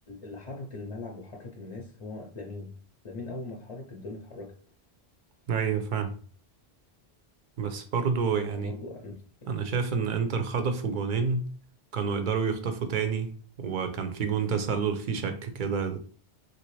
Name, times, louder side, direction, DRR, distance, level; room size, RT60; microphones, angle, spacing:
voice 1, 0.1-2.7 3.0-4.6 8.3-9.5, left 2 dB, 40° left, 0.5 m, -40 dB
voice 2, 5.5-6.1 7.6-8.7 9.5-11.5 11.9-13.3 13.6-16.0, right 6 dB, 60° right, 0.6 m, -28 dB
3.1 x 2.6 x 3.1 m
omnidirectional pair, 1.1 m